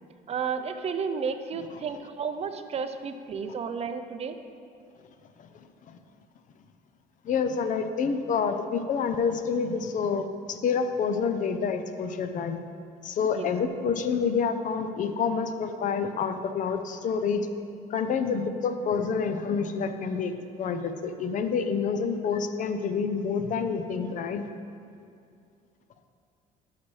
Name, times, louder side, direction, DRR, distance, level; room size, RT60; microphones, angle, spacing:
voice 1, 0.3-4.4 13.3-13.5, right 6 dB, 40° right, 8 dB, 0.4 m, -32 dB
voice 2, 5.5-6.0 7.2-12.6 13.0-17.5 17.9-24.5, left 6 dB, 50° left, 9 dB, 0.5 m, -28 dB
12.0 x 5.7 x 3.2 m, 2.4 s
cardioid pair, 110°, 17 cm